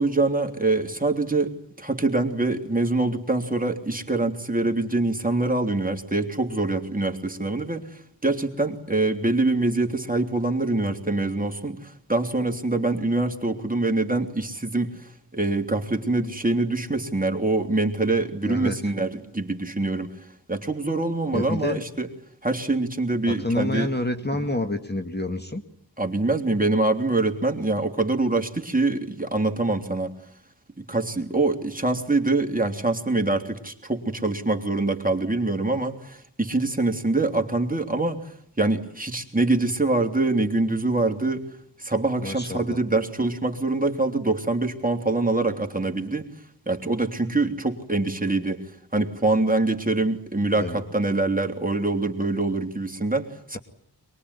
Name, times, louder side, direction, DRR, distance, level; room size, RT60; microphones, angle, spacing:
voice 1, 0.0-7.9 8.2-14.9 15.3-20.1 20.5-22.1 22.4-23.9 26.0-30.1 30.8-38.2 38.6-41.4 41.8-46.2 46.7-48.6 48.9-53.6, right 2 dB, 20° right, 4 dB, 3.2 m, -24 dB
voice 2, 18.4-18.8 21.3-21.8 23.3-25.6 42.2-42.8 50.6-50.8, left 2 dB, 25° left, 6 dB, 2.0 m, -28 dB
23.5 x 22.0 x 9.7 m, 0.66 s
wide cardioid pair, 55°, 39 cm